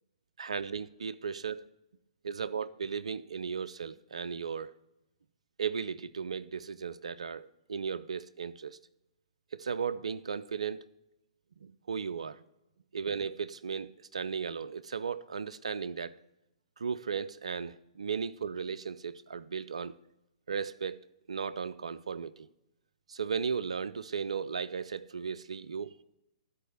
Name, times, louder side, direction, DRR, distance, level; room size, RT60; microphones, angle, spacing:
voice 1, 0.4-1.6 2.2-4.7 5.6-8.8 9.5-10.9 11.6-12.4 12.9-16.2 16.8-20.0 20.5-22.5 23.1-25.9, right 6 dB, 65° right, 0.3 m, -36 dB
12.0 x 4.2 x 5.4 m
figure-of-eight pair, 120°, 4 cm